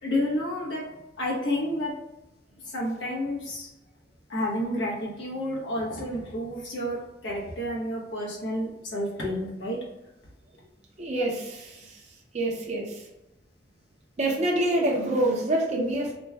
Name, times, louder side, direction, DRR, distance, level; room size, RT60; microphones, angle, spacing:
voice 1, 0.0-0.9 1.2-2.0 2.7-3.7 4.3-9.8, left 1 dB, 80° left, -3 dB, 1.1 m, -30 dB
voice 2, 11.0-11.8 12.3-12.9 14.2-16.1, right 1 dB, 40° right, -2 dB, 0.6 m, -26 dB
3.1 x 2.2 x 3.3 m, 0.94 s
head